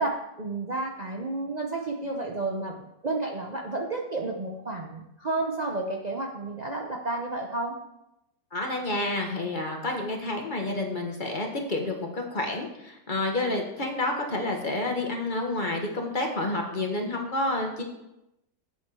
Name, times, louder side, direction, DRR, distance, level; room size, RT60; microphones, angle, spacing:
voice 1, 0.0-7.8, right 2 dB, 80° right, 0 dB, 0.3 m, -31 dB
voice 2, 8.5-17.8, left 2 dB, 30° left, 2 dB, 1.2 m, -29 dB
8.2 x 7.4 x 4.8 m, 0.87 s
omnidirectional pair, 2.0 m